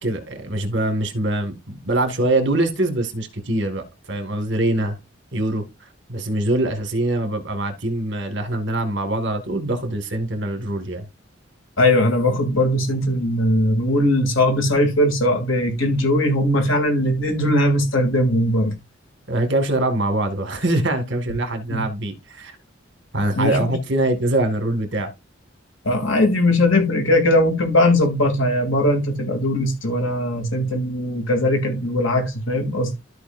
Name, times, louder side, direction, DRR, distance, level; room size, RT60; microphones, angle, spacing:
voice 1, 0.0-5.0 5.3-5.7 6.1-11.1 19.3-22.6 23.1-25.1, right 1 dB, 60° right, 2.0 m, -23 dB
voice 2, 11.8-18.7 21.7-21.8 23.3-23.7 25.8-32.9, left 1 dB, 75° left, 3.1 m, -19 dB
13.5 x 5.0 x 2.6 m
head